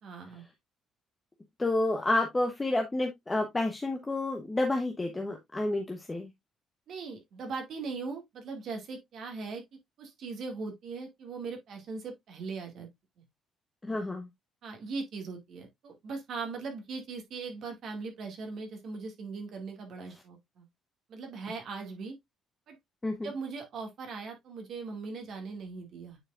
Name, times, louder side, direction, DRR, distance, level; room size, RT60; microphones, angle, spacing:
voice 1, 0.0-0.4 6.9-9.6 10.0-12.9 14.6-20.7 21.1-22.1 22.7-22.8 23.2-26.2, right 4 dB, 60° right, 2.2 m, -39 dB
voice 2, 1.6-6.3 13.8-14.3 23.0-23.3, left 2 dB, 15° left, 1.0 m, -30 dB
8.9 x 4.8 x 2.5 m
cardioid pair, 145°, 0 cm